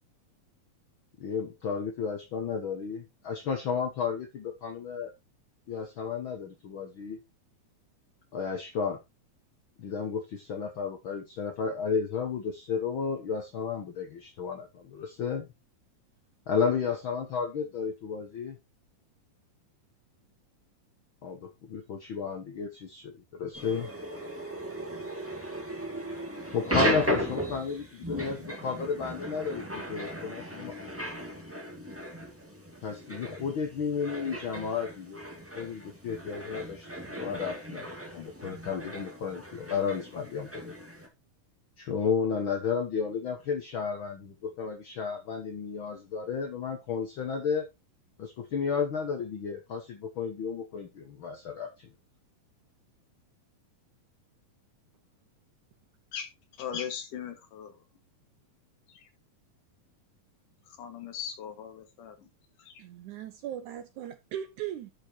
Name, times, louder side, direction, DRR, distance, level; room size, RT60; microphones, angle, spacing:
voice 1, 1.2-5.1 5.7-7.2 8.3-9.0 9.8-15.5 16.5-18.6 21.2-23.9 26.1-26.2 26.5-30.7 32.8-35.2 35.5-37.9 38.1-40.7 41.8-47.7 48.2-51.9, left 6 dB, 85° left, 1.1 m, -33 dB
sound 1, 23.5-41.1, equal, 10° right, 0.8 m, -36 dB
voice 2, 56.6-57.7 58.9-59.0 60.7-62.3 62.7-62.8, left 8 dB, 65° left, 3.1 m, -39 dB
voice 3, 62.8-64.9, right 11 dB, 75° right, 1.9 m, -38 dB
11.5 x 5.0 x 4.5 m
omnidirectional pair, 4.2 m